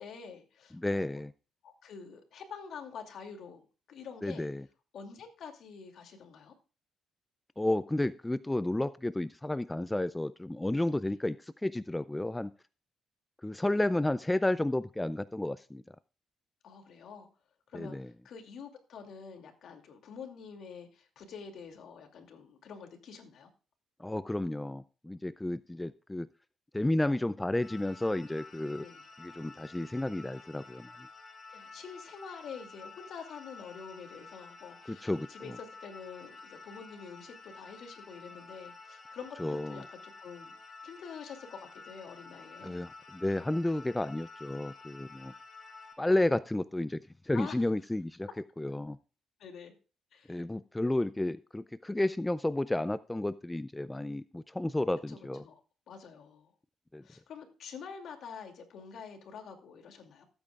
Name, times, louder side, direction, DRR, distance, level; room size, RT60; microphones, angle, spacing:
voice 1, 0.0-1.2 1.6-4.5 4.9-6.5 16.6-17.3 17.7-23.5 28.8-29.0 31.5-40.6 40.8-42.8 47.3-47.6 49.4-49.7 50.1-50.4 55.1-55.6 55.9-56.5 57.0-60.2, left 6 dB, 70° left, 4 dB, 2.5 m, -47 dB
voice 2, 0.7-1.3 4.2-4.6 7.6-12.5 13.4-15.8 17.7-18.1 24.0-26.3 26.7-28.9 29.2-30.9 34.9-35.5 39.4-39.8 42.6-45.3 46.0-48.3 48.6-49.0 50.3-55.4 56.9-57.0, left 1 dB, 10° left, 14 dB, 0.4 m, -32 dB
sound 1, 27.6-45.9, left 3 dB, 35° left, 4.2 m, -51 dB
16.5 x 8.8 x 2.4 m, 0.35 s
cardioid pair, 90°, 0 cm